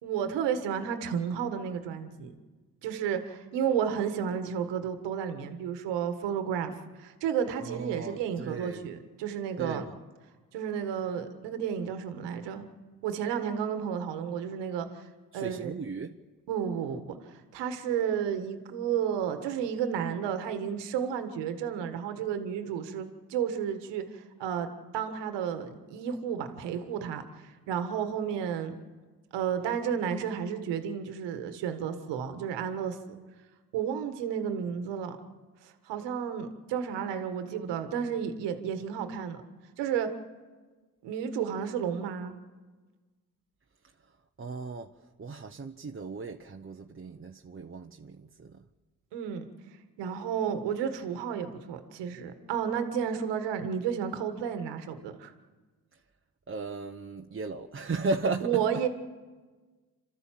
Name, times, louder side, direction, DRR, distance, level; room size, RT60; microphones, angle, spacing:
voice 1, 0.0-2.3 2.8-6.7 7.0-9.9 10.5-12.7 13.0-15.1 15.3-15.7 16.5-24.7 24.9-28.7 29.3-33.0 33.7-35.2 35.6-39.4 39.8-40.1 41.0-42.4 49.1-49.4 50.0-55.3 58.4-58.9, right 8 dB, 85° right, 1.7 m, -32 dB
voice 2, 7.6-8.9 9.6-9.9 15.3-16.2 44.4-44.9 45.2-48.6 56.5-58.6, right 3 dB, 30° right, 1.1 m, -36 dB
28.5 x 13.0 x 7.6 m
supercardioid pair, 50°, 41 cm